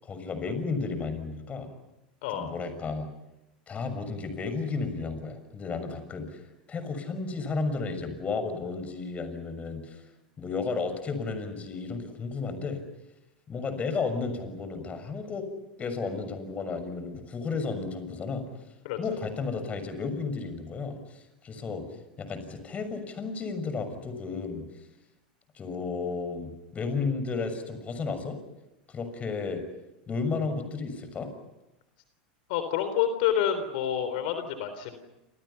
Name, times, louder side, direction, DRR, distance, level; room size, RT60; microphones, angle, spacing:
voice 1, 0.0-1.7 2.3-3.1 3.7-10.0 10.4-12.8 13.5-15.5 15.8-18.4 19.0-21.8 22.2-24.6 25.5-28.4 28.9-29.6 30.1-31.3, left 4 dB, 25° left, 9 dB, 6.5 m, -33 dB
voice 2, 2.2-2.5 18.8-19.0 32.5-35.0, left 9 dB, 65° left, 9 dB, 3.7 m, -28 dB
29.5 x 27.5 x 5.8 m, 0.94 s
hypercardioid pair, 100°, 5 cm